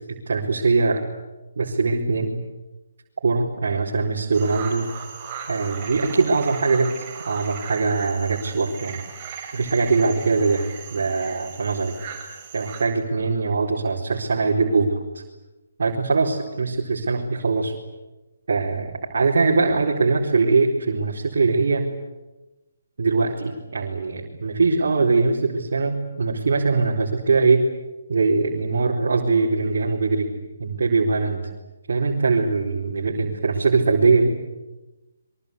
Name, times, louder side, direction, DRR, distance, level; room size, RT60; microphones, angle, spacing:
voice 1, 0.1-1.0 1.6-2.4 3.2-4.9 5.5-6.9 7.3-9.0 9.5-12.0 12.5-15.0 15.8-17.7 18.5-21.9 23.0-27.7 28.1-30.3 30.6-31.4 31.9-34.3, right 4 dB, 65° right, -3 dB, 4.3 m, -21 dB
sound 1, 4.3-12.8, right 6 dB, 25° right, 7.2 m, -38 dB
27.0 x 23.5 x 8.3 m, 1.1 s
hypercardioid pair, 150°, 0 cm